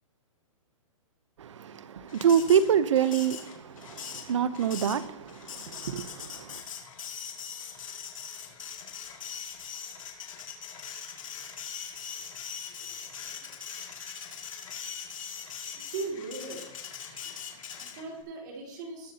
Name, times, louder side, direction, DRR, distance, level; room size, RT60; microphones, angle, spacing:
voice 1, 1.4-6.6, right 8 dB, 60° right, 0.8 m, -26 dB
Printer, 2.1-18.2, left 7 dB, 70° left, 2.4 m, -41 dB
voice 2, 15.7-16.7 17.2-19.1, right 3 dB, 35° right, 2.5 m, -39 dB
19.5 x 7.7 x 2.9 m
hypercardioid pair, 175°, 17 cm